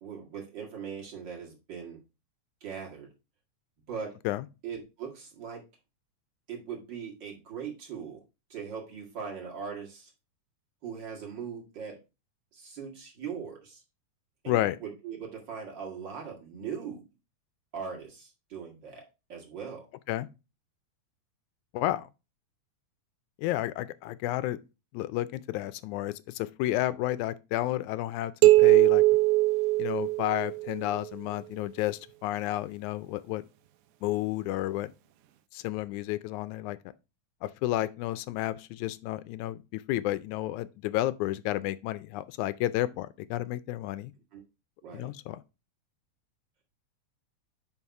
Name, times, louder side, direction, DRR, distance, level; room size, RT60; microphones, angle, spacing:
voice 1, 0.0-2.0 2.6-3.1 3.9-4.2 4.6-5.7 6.5-8.2 8.5-10.1 10.8-12.0 12.5-13.8 14.4-17.0 17.7-19.0 19.3-19.9 44.3-44.4 44.8-45.1, right 6 dB, 40° right, 2.3 m, -40 dB
voice 2, 14.5-14.8 20.1-20.3 21.7-22.1 23.4-24.6 24.9-29.0 29.8-33.4 34.0-34.9 35.5-36.8 37.4-44.1 44.9-45.4, left 15 dB, 85° left, 1.9 m, -31 dB
sound 1, 28.4-30.8, right 19 dB, 90° right, 2.1 m, -21 dB
5.7 x 5.3 x 4.6 m
omnidirectional pair, 3.4 m